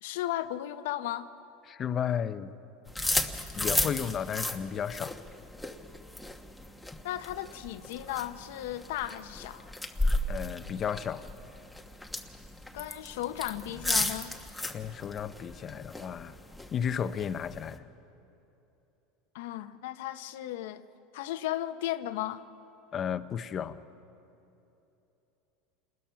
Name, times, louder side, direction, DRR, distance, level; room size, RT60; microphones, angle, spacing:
voice 1, 0.0-1.3 7.0-9.7 12.7-14.3 19.3-20.8 21.1-22.5, left 13 dB, 80° left, 10 dB, 0.9 m, -35 dB
voice 2, 1.7-2.5 3.6-5.2 10.0-11.2 14.7-16.4 16.7-17.9 22.9-23.8, left 8 dB, 30° left, 12 dB, 0.7 m, -33 dB
sound 1, 2.9-17.8, left 1 dB, ahead, 1.2 m, -35 dB
28.5 x 20.0 x 5.8 m, 3.0 s
supercardioid pair, 130°, 0 cm